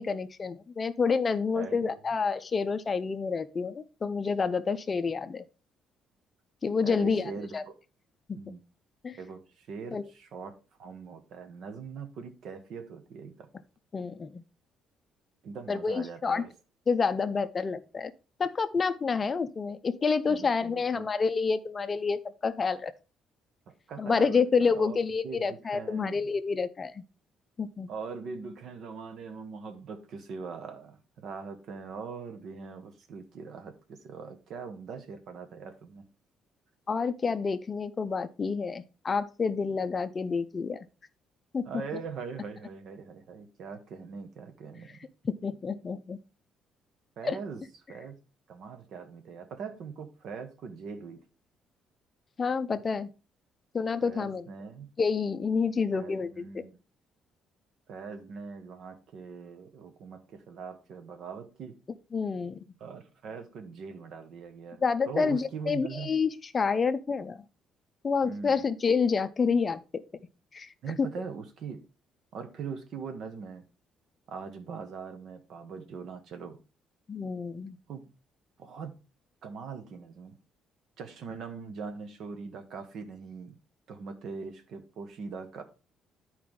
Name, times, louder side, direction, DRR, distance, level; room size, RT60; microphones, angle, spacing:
voice 1, 0.0-5.4 6.6-7.6 8.3-8.6 9.0-9.2 9.9-10.0 13.9-14.4 15.7-16.4 16.9-18.1 18.4-22.9 24.0-27.0 27.6-27.9 36.9-40.8 41.5-41.7 45.2-46.2 47.2-47.4 52.4-53.1 53.7-54.5 55.0-56.6 62.1-62.6 64.8-67.4 68.0-70.0 70.5-70.7 71.0-71.1 77.1-77.8, left 5 dB, 25° left, 0.5 m, -28 dB
voice 2, 1.5-1.9 6.8-7.6 8.4-8.6 9.2-13.5 15.4-16.5 20.3-21.1 23.7-25.0 25.2-26.2 27.9-36.0 41.6-45.1 47.2-48.2 48.5-51.2 54.0-54.9 55.9-56.8 57.9-61.8 62.8-66.1 68.2-68.6 70.8-71.8 72.3-73.6 74.3-76.6 77.9-78.1 78.6-78.9 79.4-80.4 81.0-83.5 83.9-85.6, right 5 dB, 55° right, 1.3 m, -41 dB
11.0 x 4.8 x 3.7 m
cardioid pair, 160°, 0 cm